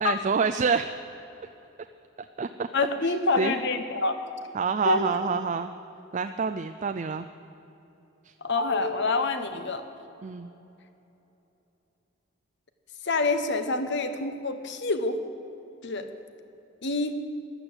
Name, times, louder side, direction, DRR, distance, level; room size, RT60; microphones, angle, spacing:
voice 1, 0.0-0.9 2.2-2.7 3.0-3.5 4.5-5.7 6.1-7.3 8.2-8.3 10.2-10.5, right 5 dB, 35° right, 8 dB, 0.4 m, -27 dB
voice 2, 2.7-4.1 4.8-5.3 8.4-9.8 13.0-15.2 15.8-16.1 16.8-17.2, left 3 dB, 60° left, 9 dB, 1.1 m, -27 dB
15.0 x 11.5 x 7.9 m, 3.0 s
head